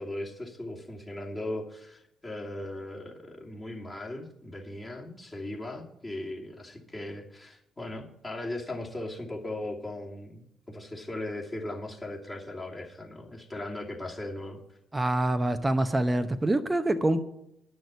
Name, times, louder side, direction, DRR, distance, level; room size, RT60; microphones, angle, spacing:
voice 1, 0.0-14.6, left 1 dB, 25° left, -2 dB, 2.8 m, -38 dB
voice 2, 14.9-17.2, right 1 dB, 20° right, 8 dB, 0.8 m, -25 dB
10.5 x 6.4 x 8.0 m, 0.81 s
hypercardioid pair, 45°, 0 cm